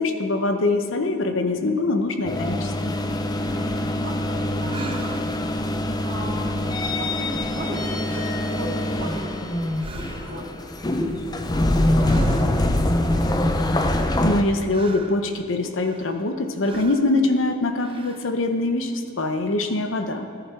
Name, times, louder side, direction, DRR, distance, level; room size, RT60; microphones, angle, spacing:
voice 1, 0.0-3.0 14.2-20.2, left 2 dB, 65° left, 6 dB, 0.8 m, -23 dB
sound 1, 2.3-14.4, left 1 dB, 20° left, 0.5 m, -24 dB
voice 2, 3.3-5.2 6.0-13.5, equal, 60° right, -5 dB, 2.9 m, -37 dB
sound 2, 4.7-5.5 7.5-7.8 8.1-8.5 8.9-9.4 9.8-10.5 12.0-12.8 13.9-15.2 15.8-16.3 16.6-17.1 17.8-18.4, right 2 dB, 25° right, 0.6 m, -39 dB
13.5 x 10.5 x 4.6 m, 2.5 s
head